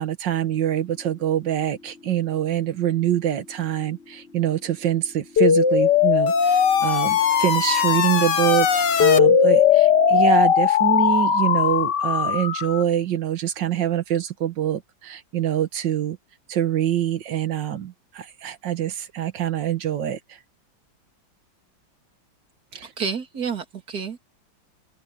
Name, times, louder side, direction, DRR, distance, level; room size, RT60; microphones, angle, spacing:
voice 1, 0.0-16.2 16.5-20.4 22.7-22.9, right 10 dB, 70° right, 1.9 m, -25 dB
sound 1, 0.5-10.6, left 4 dB, 30° left, 6.7 m, -50 dB
sound 2, 5.4-12.8, left 7 dB, 60° left, 1.8 m, -18 dB
voice 2, 22.7-24.2, right 6 dB, 50° right, 3.3 m, -30 dB
open air
omnidirectional pair, 2.1 m